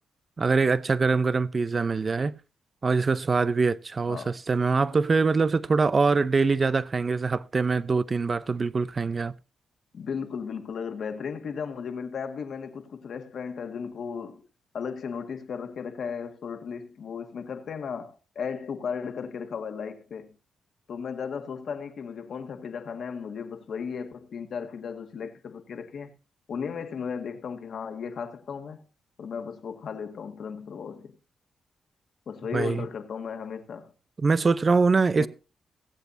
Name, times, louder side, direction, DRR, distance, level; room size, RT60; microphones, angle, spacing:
voice 1, 0.4-2.3 2.8-9.3 32.5-32.9 34.2-35.3, right 4 dB, 45° right, 0.7 m, -23 dB
voice 2, 9.9-14.4 14.7-20.3 20.9-26.1 26.5-28.8 29.2-31.2 32.3-33.9 35.2-35.3, left 6 dB, 70° left, 1.8 m, -35 dB
22.0 x 8.1 x 2.8 m
supercardioid pair, 55°, 0 cm